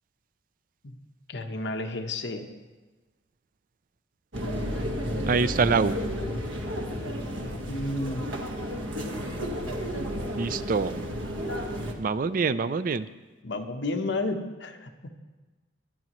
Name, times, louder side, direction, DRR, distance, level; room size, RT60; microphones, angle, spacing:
voice 1, 1.3-2.5 7.7-8.3 13.4-15.1, left 2 dB, 65° left, 5 dB, 1.1 m, -31 dB
sound 1, 4.3-11.9, equal, 80° right, 1.5 m, -32 dB
voice 2, 5.3-6.0 10.4-11.0 12.0-13.1, right 5 dB, 45° right, 14 dB, 0.4 m, -25 dB
21.0 x 11.5 x 3.1 m, 1.3 s
head